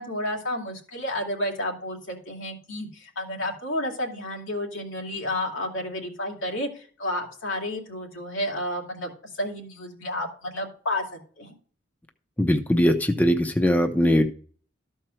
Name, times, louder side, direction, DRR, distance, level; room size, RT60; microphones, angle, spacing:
voice 1, 0.0-11.5, left 1 dB, 85° left, 0 dB, 2.5 m, -31 dB
voice 2, 12.4-14.3, equal, 10° left, 4 dB, 0.7 m, -21 dB
13.5 x 4.5 x 6.1 m, 0.44 s
head